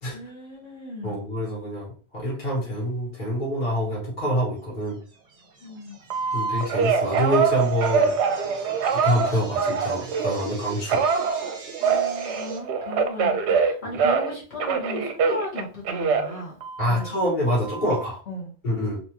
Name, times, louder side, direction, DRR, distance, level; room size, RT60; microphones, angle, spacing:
voice 1, 0.1-1.2 5.6-6.0 11.8-16.6 16.9-17.1 18.3-18.5, left 1 dB, 60° left, -5 dB, 1.8 m, -36 dB
voice 2, 1.0-5.0 6.3-8.5 8.9-11.0 13.8-14.0 16.8-18.2 18.6-19.0, equal, 40° left, -5 dB, 1.6 m, -26 dB
sound 1, 4.9-12.6, right 5 dB, 40° right, 0.7 m, -42 dB
Telephone, 6.1-10.4 10.9-14.3 14.6-17.1 17.6-18.1, right 5 dB, 70° right, 0.8 m, -24 dB
4.3 x 2.6 x 3.0 m, 0.39 s
omnidirectional pair, 1.2 m